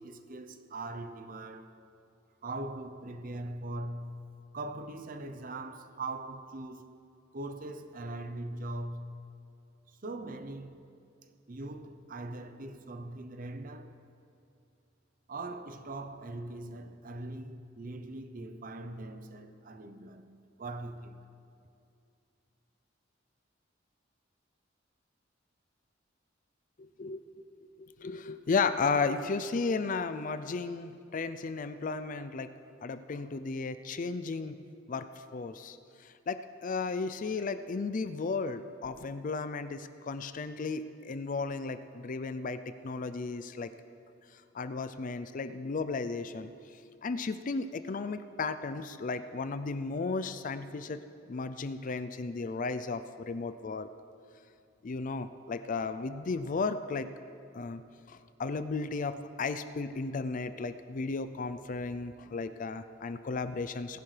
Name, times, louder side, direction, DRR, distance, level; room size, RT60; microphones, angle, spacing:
voice 1, 0.0-1.7 2.4-7.0 7.3-9.3 9.9-10.9 11.5-14.0 15.3-21.3, right 2 dB, 45° right, 0.7 m, -41 dB
voice 2, 26.8-27.2 28.0-32.5 32.8-34.6 34.9-35.8 36.0-43.7 44.5-46.5 47.0-51.0 51.3-53.9 54.8-57.1 57.5-57.8 58.1-64.0, left 4 dB, 45° left, 0.4 m, -34 dB
19.0 x 10.5 x 3.3 m
head